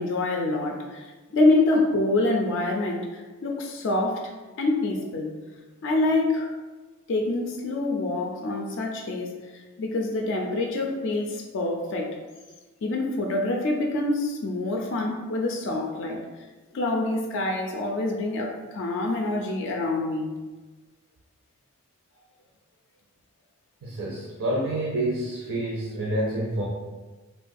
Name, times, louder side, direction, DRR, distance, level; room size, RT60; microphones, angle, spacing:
voice 1, 0.0-4.3 4.6-5.3 5.8-6.5 7.1-12.2 12.8-16.2 16.7-20.3, left 2 dB, 55° left, 1 dB, 0.4 m, -26 dB
voice 2, 23.8-26.7, right 1 dB, 70° right, -3 dB, 0.5 m, -28 dB
3.5 x 2.3 x 2.5 m, 1.3 s
head